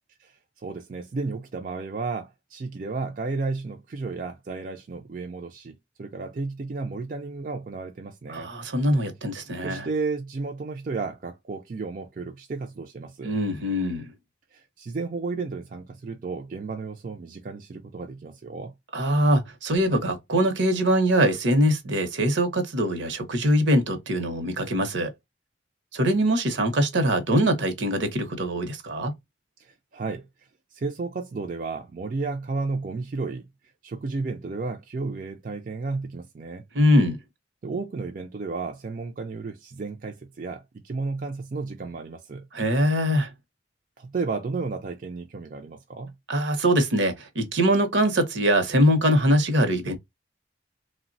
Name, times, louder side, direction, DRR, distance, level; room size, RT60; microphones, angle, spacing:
voice 1, 0.2-8.5 9.6-13.3 14.5-18.7 29.6-30.3 30.7-33.5 33.8-36.6 37.6-42.5 44.0-46.1, right 3 dB, 45° right, 0.4 m, -33 dB
voice 2, 8.3-9.9 13.2-14.0 18.9-25.1 25.9-29.1 36.7-37.2 42.5-43.3 46.3-50.0, equal, 75° right, 0.7 m, -22 dB
3.2 x 2.1 x 2.5 m
head